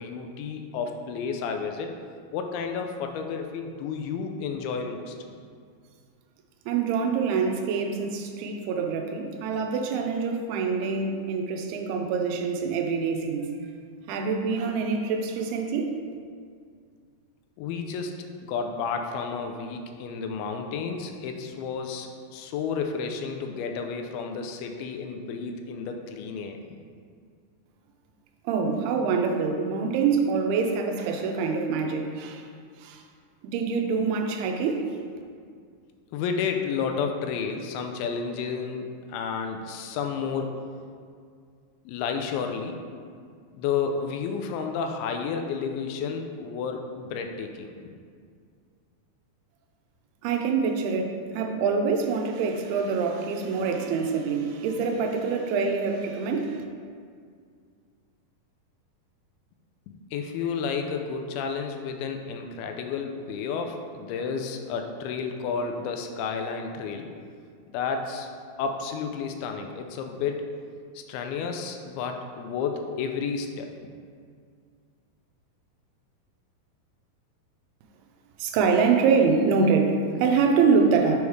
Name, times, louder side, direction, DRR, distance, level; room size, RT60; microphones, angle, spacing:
voice 1, 0.0-2.0 2.3-5.1 17.6-26.6 36.1-40.6 41.9-42.8 43.5-47.7 60.1-67.1 67.7-68.3 68.6-70.4 71.0-73.7, left 5 dB, 85° left, 4 dB, 2.3 m, -31 dB
voice 2, 6.7-13.5 14.1-15.9 28.4-32.5 32.8-33.0 33.4-34.8 50.2-56.6 78.4-81.2, right 5 dB, 85° right, 3 dB, 2.5 m, -25 dB
7.0 x 3.2 x 4.7 m, 2.2 s
omnidirectional pair, 4.5 m